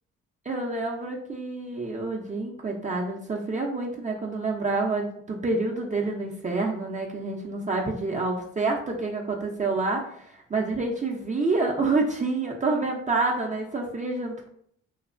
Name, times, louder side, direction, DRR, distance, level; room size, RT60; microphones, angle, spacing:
voice 1, 0.5-14.5, right 3 dB, 25° right, -1 dB, 0.4 m, -28 dB
3.1 x 2.0 x 2.4 m, 0.66 s
cardioid pair, 70°, 32 cm